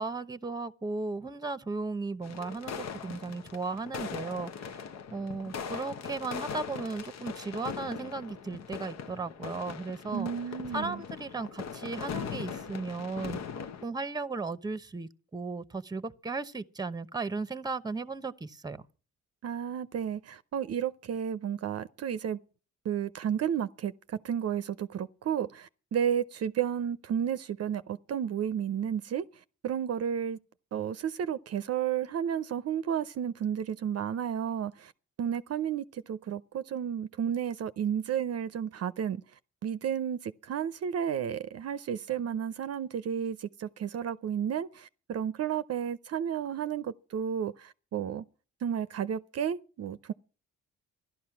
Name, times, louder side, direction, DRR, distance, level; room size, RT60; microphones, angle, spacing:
voice 1, 0.0-4.8 5.1-10.3 10.7-13.4 13.8-18.8, right 3 dB, 15° right, 0.9 m, -36 dB
sound 1, 2.2-13.9, left 7 dB, 60° left, 0.9 m, -40 dB
voice 2, 10.1-11.0 19.4-22.4 22.8-29.3 29.6-30.4 30.7-34.9 35.2-39.2 39.6-48.2 48.6-50.1, right 8 dB, 55° right, 0.6 m, -32 dB
14.5 x 11.5 x 5.8 m
cardioid pair, 90°, 30 cm